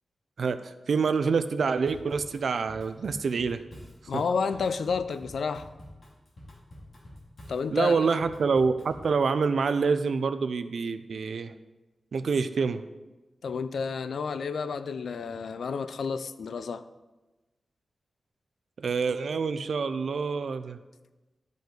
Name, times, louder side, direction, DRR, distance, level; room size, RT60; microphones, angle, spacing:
voice 1, 0.4-3.6 4.1-4.2 7.7-11.5 12.1-12.8 18.8-20.8, right 5 dB, 70° right, 11 dB, 0.4 m, -27 dB
Drum kit / Drum, 1.9-9.2, left 1 dB, 50° left, 2.3 m, -48 dB
voice 2, 4.1-5.7 7.5-8.1 13.4-16.8, left 5 dB, 85° left, 12 dB, 0.4 m, -30 dB
12.0 x 5.2 x 3.9 m, 1.1 s
wide cardioid pair, 135°, 0 cm